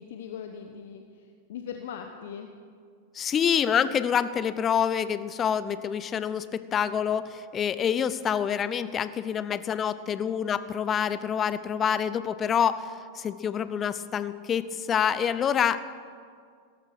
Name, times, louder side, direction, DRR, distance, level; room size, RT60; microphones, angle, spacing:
voice 1, 0.0-2.5, left 7 dB, 55° left, 6 dB, 1.0 m, -40 dB
voice 2, 3.1-15.8, left 8 dB, 25° left, 15 dB, 0.7 m, -27 dB
17.5 x 13.5 x 6.1 m, 2.1 s
figure-of-eight pair, 90°, 0 cm